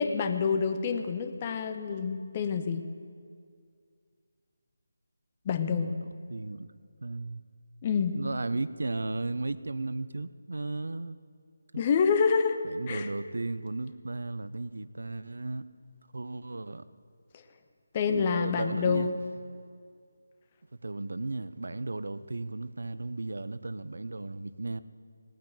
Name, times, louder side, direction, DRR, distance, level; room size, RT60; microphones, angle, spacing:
voice 1, 0.0-2.8 5.4-5.9 7.8-8.1 11.8-12.6 12.9-13.1 17.9-19.1, left 6 dB, 30° left, 8 dB, 1.0 m, -27 dB
voice 2, 5.8-6.7 7.0-7.4 8.1-11.2 12.6-15.6 16.1-16.9 18.1-19.1 20.7-24.8, right 2 dB, 70° right, 15 dB, 0.6 m, -35 dB
18.5 x 9.4 x 7.6 m, 2.1 s
figure-of-eight pair, 155°, 0 cm